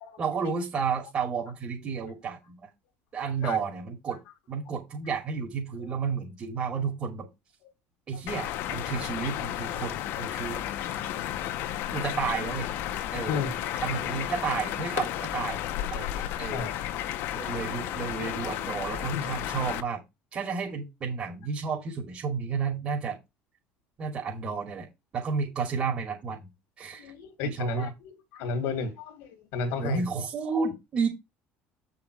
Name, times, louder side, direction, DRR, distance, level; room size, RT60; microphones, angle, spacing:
voice 1, 0.2-2.7 3.1-4.2 4.5-7.3 8.1-10.6 11.9-12.7 13.1-13.4 13.8-15.6 15.9-16.7 17.3-20.0 20.3-23.2 24.0-24.9 25.1-26.5 26.8-27.1 27.4-27.9 29.8-31.1, right 5 dB, 35° right, 2.9 m, -31 dB
sound 1, 8.3-19.8, left 12 dB, 65° left, 1.2 m, -33 dB
voice 2, 13.3-13.6 16.5-16.8 19.1-19.2 27.0-30.0, left 4 dB, 80° left, 2.1 m, -33 dB
8.6 x 5.9 x 4.7 m
cardioid pair, 150°, 4 cm